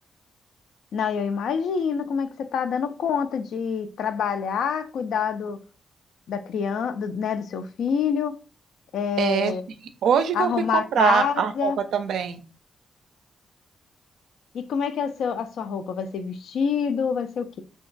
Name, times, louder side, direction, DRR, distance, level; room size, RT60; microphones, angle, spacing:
voice 1, 0.9-5.6 6.3-8.4 8.9-9.6 10.3-11.8 14.5-17.6, left 7 dB, 90° left, 0.3 m, -26 dB
voice 2, 9.2-9.5 10.0-12.4, right 7 dB, 90° right, 0.4 m, -23 dB
2.9 x 2.2 x 2.5 m
cardioid pair, 110°, 0 cm